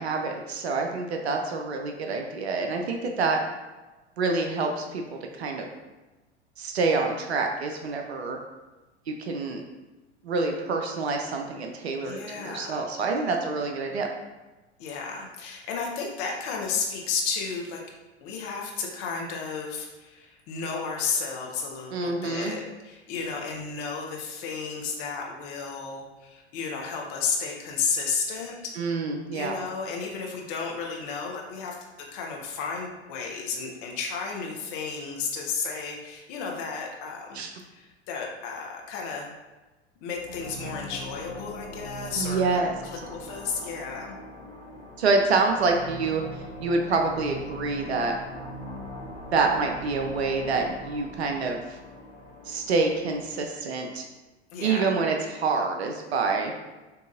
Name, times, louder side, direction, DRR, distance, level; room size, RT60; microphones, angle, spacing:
voice 1, 0.0-3.4 4.2-5.7 6.6-8.4 9.1-9.6 10.2-14.1 21.9-22.5 28.8-29.5 37.3-37.5 42.2-42.7 45.0-48.1 49.3-51.8 52.4-54.0 54.6-56.5, right 4 dB, 70° right, 3 dB, 0.6 m, -27 dB
voice 2, 12.0-12.8 14.8-17.8 18.2-28.5 29.3-31.8 32.1-37.4 37.7-39.3 40.0-44.2 54.5-54.8, left 5 dB, 45° left, 0 dB, 1.0 m, -33 dB
sound 1, 40.1-53.5, equal, 20° left, 1.3 m, -41 dB
6.7 x 2.8 x 2.5 m, 1.2 s
figure-of-eight pair, 85°, 34 cm